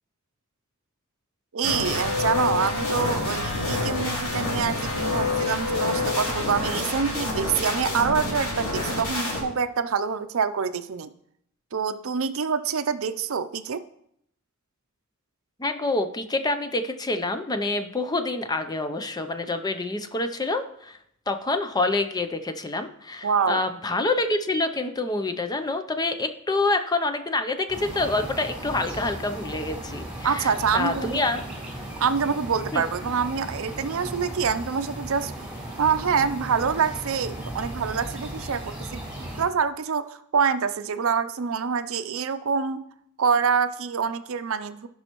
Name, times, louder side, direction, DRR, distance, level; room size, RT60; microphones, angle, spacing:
voice 1, 1.5-11.1 11.7-13.8 23.2-23.6 30.2-31.2 32.0-35.3 35.8-39.0 39.4-42.8 43.2-44.9, right 6 dB, 65° right, 11 dB, 0.5 m, -26 dB
sound 1, 1.6-9.4, left 2 dB, 90° left, 2.7 m, -27 dB
voice 2, 15.6-21.0 21.3-31.4 32.7-32.8, left 2 dB, 20° left, 8 dB, 0.5 m, -27 dB
sound 2, 27.7-39.4, right 1 dB, 5° right, 3.3 m, -36 dB
16.0 x 5.5 x 3.0 m, 0.73 s
head